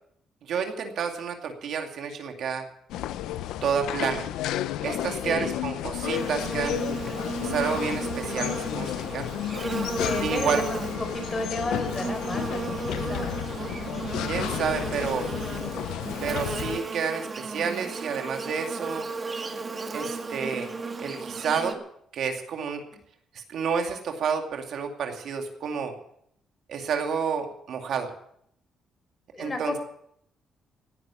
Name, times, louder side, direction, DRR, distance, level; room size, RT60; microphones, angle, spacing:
voice 1, 0.4-2.6 3.6-4.3 4.8-6.8 7.4-9.3 10.2-10.6 14.2-15.3 16.2-19.1 19.9-20.7 21.0-21.8 22.1-22.8 23.3-25.9 26.7-28.1 29.4-29.7, right 6 dB, 70° right, 4 dB, 2.4 m, -30 dB
sound 1, 2.9-16.8, left 13 dB, 90° left, 0.6 m, -32 dB
Buzz, 6.0-21.7, right 3 dB, 35° right, 1.7 m, -34 dB
voice 2, 10.0-13.4 29.3-29.8, left 3 dB, 30° left, 4 dB, 5.3 m, -32 dB
17.5 x 10.0 x 7.1 m, 0.71 s
cardioid pair, 90°, 0 cm